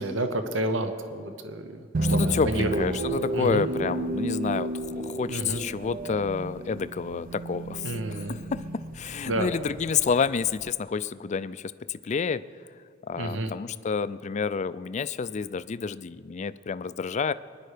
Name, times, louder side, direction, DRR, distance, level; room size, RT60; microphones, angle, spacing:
voice 1, 0.0-2.9 3.3-3.7 5.3-5.6 7.8-8.4 9.3-9.5 13.2-13.5, right 1 dB, 65° right, 8 dB, 0.9 m, -30 dB
sound 1, 1.9-10.7, right 2 dB, 45° right, 0.6 m, -32 dB
voice 2, 2.0-12.4 13.0-17.3, left 5 dB, 35° left, 15 dB, 0.3 m, -29 dB
23.5 x 10.5 x 5.0 m, 2.1 s
head